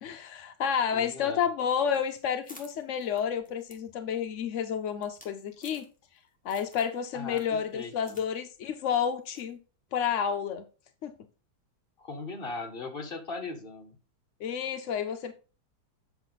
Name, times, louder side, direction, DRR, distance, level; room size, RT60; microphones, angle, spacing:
voice 1, 0.0-5.9 6.4-9.6 9.9-10.6 11.0-11.1 14.4-15.3, left 7 dB, 70° left, 0.7 m, -30 dB
voice 2, 0.9-1.5 7.1-8.2 12.0-14.0, left 3 dB, 30° left, 1.5 m, -39 dB
sound 1, 1.8-6.2 6.5-7.0 7.3-8.3 8.5-8.6 9.3-9.5, left 1 dB, 5° left, 1.6 m, -54 dB
8.2 x 5.9 x 3.9 m
omnidirectional pair, 2.1 m